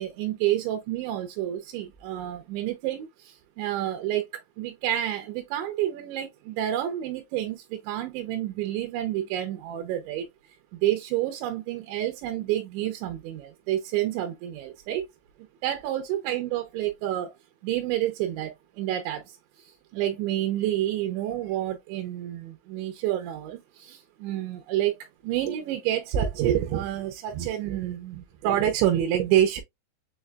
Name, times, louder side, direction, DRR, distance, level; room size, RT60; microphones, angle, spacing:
voice 1, 0.0-10.3 10.7-15.1 15.4-17.3 17.6-19.4 19.9-25.0 25.2-29.6, right 12 dB, 80° right, 3.0 m, -28 dB
7.2 x 3.2 x 2.3 m
omnidirectional pair, 5.4 m